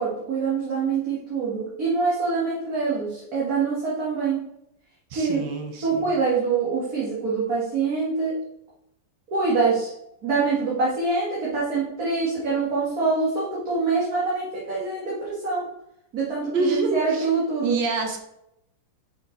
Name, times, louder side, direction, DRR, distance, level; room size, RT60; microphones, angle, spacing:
voice 1, 0.0-4.4 5.1-5.5 5.8-8.4 9.3-9.9 10.2-15.7 16.1-17.8, right 4 dB, 50° right, -7 dB, 2.1 m, -25 dB
voice 2, 5.1-6.1 16.5-17.3 17.6-18.2, right 3 dB, 70° right, 3 dB, 1.7 m, -26 dB
5.9 x 5.6 x 3.8 m, 0.81 s
omnidirectional pair, 2.1 m